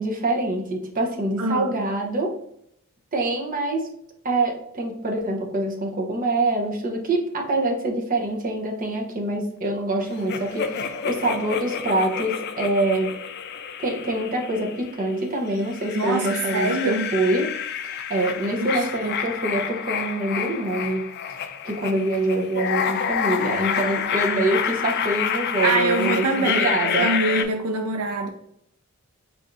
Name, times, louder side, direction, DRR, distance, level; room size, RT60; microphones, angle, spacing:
voice 1, 0.0-2.3 3.1-3.8 4.2-13.1 13.8-17.5 17.8-21.1 21.6-27.1, right 2 dB, 40° right, 0.8 m, -25 dB
voice 2, 1.4-1.7 15.9-17.1 18.6-19.1 25.6-28.3, right 3 dB, 80° right, 0.4 m, -25 dB
sound 1, 10.3-15.0 15.5-27.4, left 7 dB, 45° left, 0.3 m, -28 dB
4.3 x 3.5 x 2.6 m
head